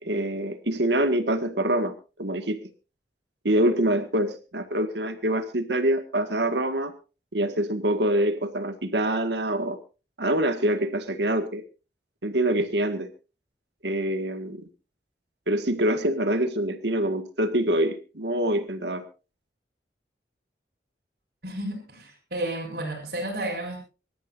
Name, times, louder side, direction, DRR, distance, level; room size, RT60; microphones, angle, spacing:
voice 1, 0.0-2.7 3.4-6.9 7.3-9.8 10.2-11.6 12.2-13.1 13.8-14.7 15.5-19.0, right 1 dB, 85° right, 7 dB, 1.9 m, -25 dB
voice 2, 21.4-23.8, right 1 dB, 60° right, -2 dB, 5.2 m, -32 dB
25.0 x 13.0 x 2.6 m, 0.33 s
head